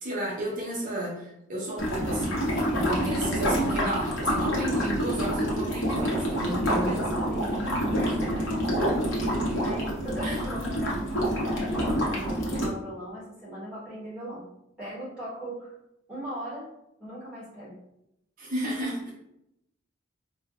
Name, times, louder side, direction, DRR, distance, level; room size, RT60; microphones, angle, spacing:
voice 1, 0.0-7.0 7.5-7.7 8.0-8.2 10.2-10.4 18.4-19.1, right 1 dB, 45° right, -4 dB, 0.8 m, -33 dB
sound 1, 1.8-12.7, equal, 65° left, 0.9 m, -27 dB
voice 2, 6.8-8.8 9.6-14.4 14.8-15.7 16.1-16.7 17.0-17.8, equal, 5° right, -10 dB, 1.3 m, -38 dB
4.4 x 2.2 x 2.4 m, 0.82 s
head